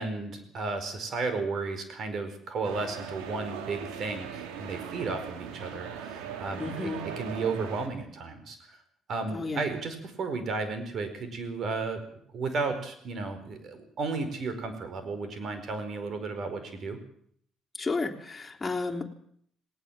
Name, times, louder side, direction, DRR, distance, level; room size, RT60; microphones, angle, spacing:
voice 1, 0.0-6.9 7.2-8.8 9.1-12.0 12.3-17.0, right 3 dB, 55° right, 9 dB, 4.9 m, -33 dB
sound 1, 2.6-7.9, right 7 dB, 80° right, 2.6 m, -39 dB
voice 2, 6.6-7.1 9.3-9.6 17.8-19.0, left 3 dB, 25° left, 0 dB, 3.4 m, -32 dB
19.0 x 19.0 x 7.5 m, 0.65 s
hypercardioid pair, 60°, 0 cm